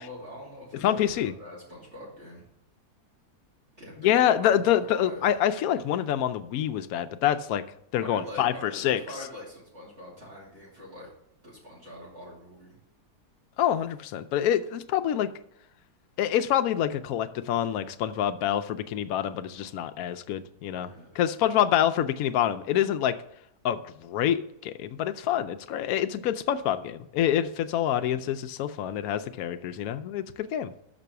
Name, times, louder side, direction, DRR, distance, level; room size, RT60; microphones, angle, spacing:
voice 1, 0.0-2.4 3.8-5.3 8.0-11.1 11.4-12.7 20.9-21.5, left 1 dB, 40° right, -5 dB, 2.8 m, -44 dB
voice 2, 0.8-1.3 4.0-7.6 7.9-9.0 13.6-15.3 16.2-20.9 21.2-23.2 23.6-30.7, left 10 dB, 70° left, 9 dB, 1.0 m, -26 dB
6.1 x 6.1 x 6.7 m, 0.76 s
omnidirectional pair, 1.7 m